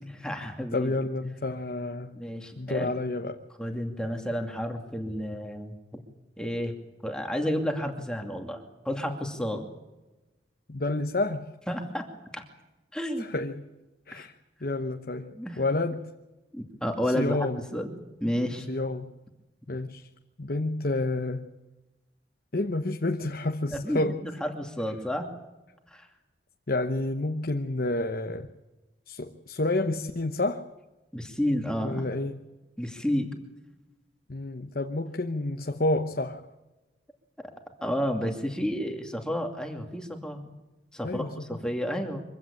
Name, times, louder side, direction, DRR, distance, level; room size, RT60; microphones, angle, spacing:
voice 1, 0.2-0.9 2.1-2.9 3.6-6.0 6.4-6.7 7.0-9.6 11.7-12.1 12.3-12.4 12.9-13.3 14.1-14.3 15.3-15.6 16.5-17.5 17.7-17.9 18.2-18.7 23.7-25.3 25.9-26.1 31.1-32.0 32.8-33.3 37.8-40.5 40.9-42.2, equal, 5° left, 3 dB, 2.5 m, -31 dB
voice 2, 0.7-2.2 2.6-3.3 10.7-11.5 13.2-13.7 14.1-14.3 14.6-16.0 17.2-17.6 18.7-19.1 19.7-20.1 20.4-21.5 22.5-24.2 26.7-28.5 29.1-30.6 31.8-32.4 34.3-36.4 41.0-41.6, left 2 dB, 50° left, 5 dB, 1.0 m, -29 dB
24.5 x 15.5 x 8.6 m, 1.1 s
head